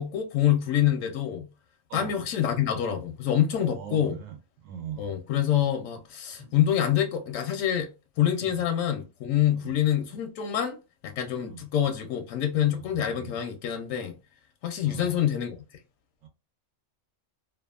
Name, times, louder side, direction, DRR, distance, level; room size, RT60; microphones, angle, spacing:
voice 1, 0.0-1.5 1.9-4.2 5.0-7.9 8.2-10.8 11.0-14.1 14.6-15.6, left 10 dB, 85° left, 1.0 m, -26 dB
voice 2, 3.5-4.4 4.6-5.1 6.4-6.5 8.4-8.6 9.5-9.7 11.4-11.6 12.7-13.4 14.8-15.2 16.2-16.3, right 8 dB, 80° right, 1.1 m, -41 dB
2.7 x 2.3 x 2.3 m
omnidirectional pair, 1.3 m